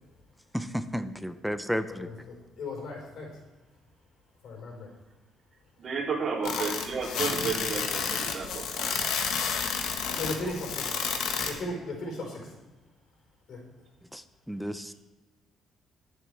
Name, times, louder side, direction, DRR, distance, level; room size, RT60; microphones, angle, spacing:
voice 1, 0.5-2.1 14.1-14.9, equal, ahead, 10 dB, 0.6 m, -33 dB
voice 2, 1.9-3.4 4.4-4.9 6.4-6.5 10.1-11.0 11.4-12.5 13.5-13.6, left 2 dB, 65° left, 0 dB, 4.8 m, -37 dB
voice 3, 5.8-8.9, right 5 dB, 50° right, -3 dB, 3.4 m, -32 dB
sound 1, 6.4-11.5, left 6 dB, 85° left, 1.5 m, -30 dB
22.5 x 7.8 x 3.5 m, 1.1 s
cardioid pair, 120°, 0 cm